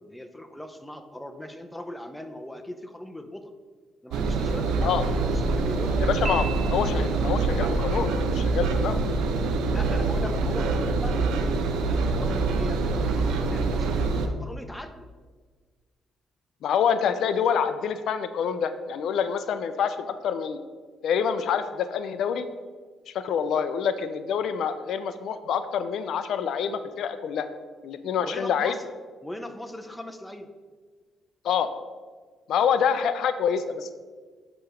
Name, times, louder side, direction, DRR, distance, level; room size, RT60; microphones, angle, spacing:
voice 1, 0.0-3.5 4.0-6.5 9.7-15.1 28.2-28.9 29.2-30.5 32.7-32.8, left 1 dB, 5° left, 7 dB, 0.6 m, -40 dB
Engine, 4.1-14.3, right 3 dB, 85° right, 0.5 m, -25 dB
voice 2, 5.9-9.0 16.6-20.6 21.0-22.5 23.1-27.5 27.8-28.7 31.4-31.7 32.5-33.9, left 7 dB, 75° left, 11 dB, 0.4 m, -26 dB
Piano, 6.2-7.4, right 5 dB, 45° right, 1.2 m, -36 dB
8.5 x 3.0 x 4.9 m, 1.5 s
cardioid pair, 90°, 0 cm